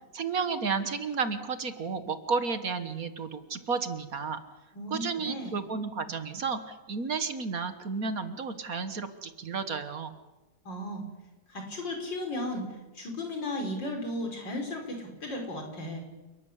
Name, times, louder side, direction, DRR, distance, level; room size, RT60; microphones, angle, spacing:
voice 1, 0.1-4.4 4.9-10.1, right 5 dB, 55° right, 10 dB, 1.8 m, -32 dB
voice 2, 4.8-5.5 10.7-11.0 11.5-12.7 13.0-16.0, left 1 dB, 85° left, 3 dB, 5.4 m, -35 dB
29.0 x 13.0 x 10.0 m, 1.1 s
omnidirectional pair, 1.9 m